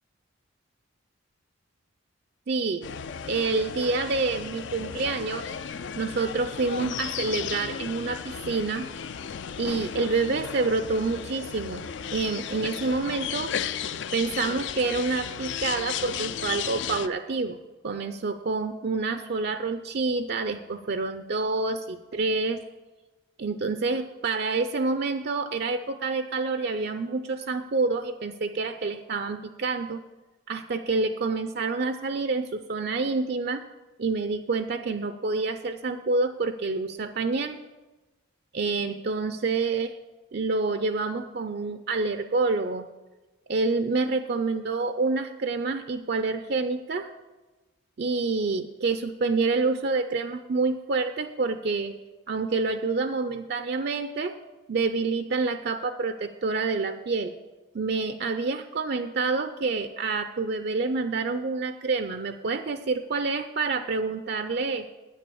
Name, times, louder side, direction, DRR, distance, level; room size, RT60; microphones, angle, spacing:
voice 1, 2.5-2.9 3.3-5.5 6.0-8.9 9.6-13.5 14.1-17.6 17.8-22.6 23.4-30.0 30.5-33.6 34.0-37.6 38.5-40.0 40.3-42.9 43.5-47.1 48.0-51.9 52.3-54.3 54.7-57.3 57.7-64.9, right 3 dB, 50° right, 9 dB, 0.4 m, -27 dB
sound 1, 2.8-17.1, left 8 dB, 55° left, 0.4 m, -34 dB
9.9 x 9.0 x 6.9 m, 1.1 s
head